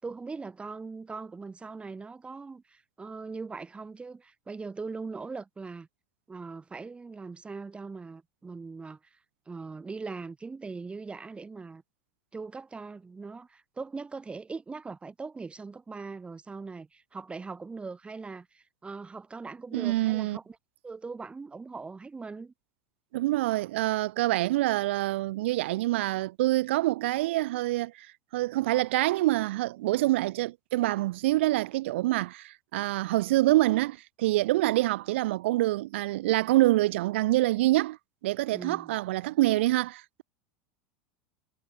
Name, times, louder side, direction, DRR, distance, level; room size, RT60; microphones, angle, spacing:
voice 1, 0.0-5.9 6.3-9.2 9.5-11.8 12.3-20.6 20.8-22.5 38.5-38.9, right 4 dB, 15° right, 4.5 m, -40 dB
voice 2, 19.7-20.4 23.1-28.1 28.3-38.0 38.2-40.2, right 17 dB, 75° right, 0.4 m, -26 dB
hypercardioid pair, 95°, 6 cm